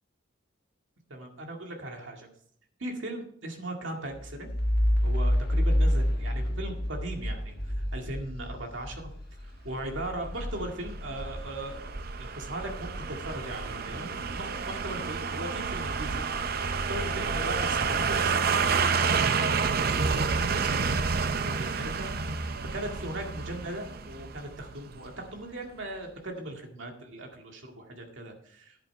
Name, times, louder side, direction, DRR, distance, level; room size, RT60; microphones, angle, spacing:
voice 1, 1.1-2.3 2.8-4.5 5.0-9.1 9.4-14.1 14.3-22.1 22.4-22.5 22.7-28.9, right 1 dB, 70° right, 2 dB, 2.0 m, -39 dB
sound 1, 4.1-12.4 12.7-15.3, equal, 50° left, 1.4 m, -30 dB
sound 2, 10.1-25.1 25.4-25.5, right 5 dB, 50° right, 0.6 m, -29 dB
10.5 x 8.7 x 4.7 m, 0.63 s
head